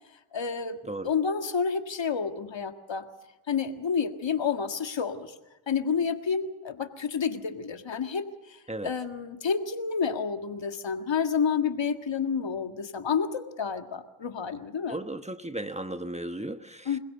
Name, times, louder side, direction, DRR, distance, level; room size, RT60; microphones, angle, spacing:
voice 1, 0.3-3.0 3.5-5.3 5.7-8.6 8.8-15.0 16.9-17.0, left 6 dB, 60° left, 1.8 m, -29 dB
voice 2, 14.9-16.9, right 1 dB, 15° right, 1.3 m, -35 dB
25.5 x 16.5 x 6.7 m
cardioid pair, 45°, 49 cm